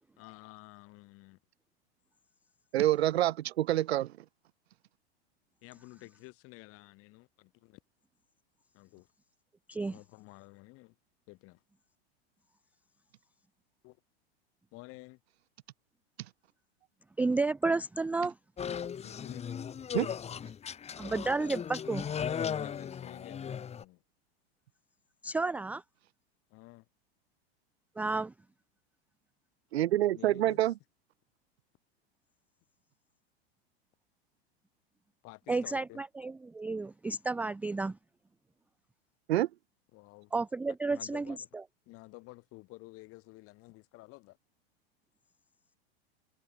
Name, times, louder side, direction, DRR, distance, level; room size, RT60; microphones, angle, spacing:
voice 1, 0.2-1.4 5.6-7.8 8.7-9.1 9.9-11.0 11.3-11.6 13.8-14.0 14.7-15.2 19.0-19.5 22.5-24.0 26.5-26.9 30.1-30.7 35.2-36.0 39.9-40.3 40.9-41.5 41.9-44.4, left 22 dB, 45° left, 4.3 m, -52 dB
voice 2, 2.7-4.1 19.9-20.1 29.7-30.7 39.3-39.5, right 14 dB, 80° right, 1.0 m, -27 dB
voice 3, 17.2-18.3 21.0-22.1 25.2-25.8 28.0-28.3 35.5-38.0 40.3-41.3, right 3 dB, 5° right, 0.4 m, -31 dB
sound 1, 18.6-23.8, left 8 dB, 20° left, 1.8 m, -37 dB
hypercardioid pair, 120°, 31 cm